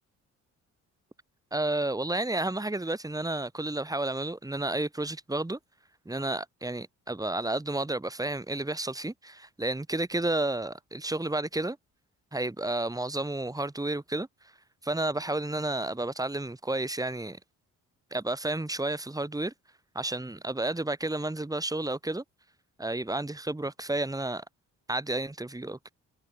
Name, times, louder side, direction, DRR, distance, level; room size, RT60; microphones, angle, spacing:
voice 1, 1.5-5.6 6.1-11.8 12.3-14.3 14.8-17.4 18.1-19.5 19.9-22.2 22.8-24.4 24.9-25.9, right 2 dB, 10° right, 7.7 m, -31 dB
cardioid pair, 90°, 30 cm